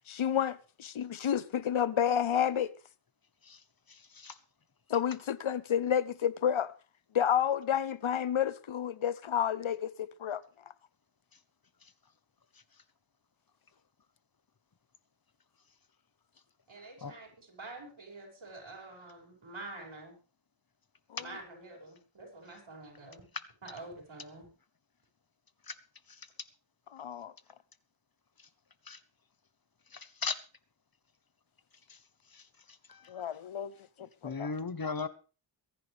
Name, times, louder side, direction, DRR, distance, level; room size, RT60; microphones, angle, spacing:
voice 1, 0.1-2.7 4.9-6.7 7.1-10.4 21.1-21.3 26.9-27.3 33.1-33.7 34.0-34.5, left 9 dB, 90° left, 0.8 m, -30 dB
voice 2, 3.9-4.4 17.0-17.1 25.7-25.8 26.1-26.2 28.9-29.0 29.9-30.4 31.9-32.0 32.3-32.4 32.9-33.2 34.2-35.1, left 4 dB, 50° left, 1.2 m, -38 dB
voice 3, 16.7-20.2 21.2-23.3 23.6-24.5, right 2 dB, 80° right, 6.3 m, -47 dB
23.5 x 10.5 x 3.5 m
wide cardioid pair, 80°, 46 cm